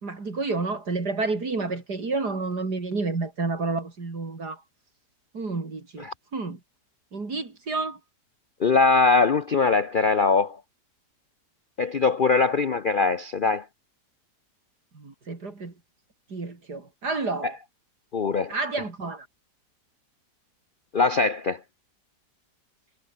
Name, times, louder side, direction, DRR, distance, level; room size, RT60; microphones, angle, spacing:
voice 1, 0.0-4.6 5.3-6.6 7.1-8.0 14.9-15.7 16.3-17.6 18.5-19.3, right 3 dB, 70° right, 4.2 m, -30 dB
voice 2, 8.6-10.6 11.8-13.6 18.1-18.5 20.9-21.6, left 4 dB, 45° left, 0.7 m, -21 dB
omnidirectional pair, 1.8 m